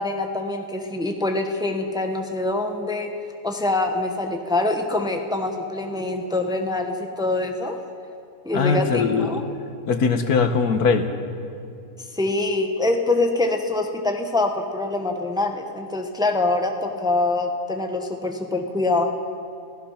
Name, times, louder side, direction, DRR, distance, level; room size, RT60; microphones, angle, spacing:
voice 1, 0.0-3.1 3.4-7.8 8.4-9.4 12.1-19.1, left 2 dB, 5° right, 3 dB, 1.2 m, -24 dB
voice 2, 8.5-9.4 9.9-11.1, left 5 dB, 70° left, 8 dB, 1.6 m, -20 dB
27.0 x 16.5 x 5.8 m, 2.4 s
omnidirectional pair, 1.7 m